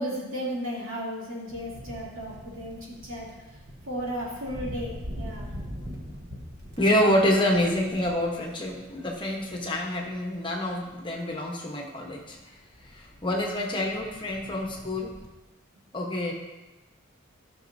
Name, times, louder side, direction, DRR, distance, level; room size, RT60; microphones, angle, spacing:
voice 1, 0.0-3.3 3.9-5.5, equal, 70° right, -6 dB, 2.8 m, -34 dB
sound 1, 1.5-11.3 12.2-15.3, equal, 50° right, 1.1 m, -43 dB
voice 2, 6.8-12.4 12.8-15.1 15.9-16.3, left 1 dB, 25° left, -1 dB, 1.0 m, -27 dB
13.5 x 6.0 x 2.7 m, 1.1 s
head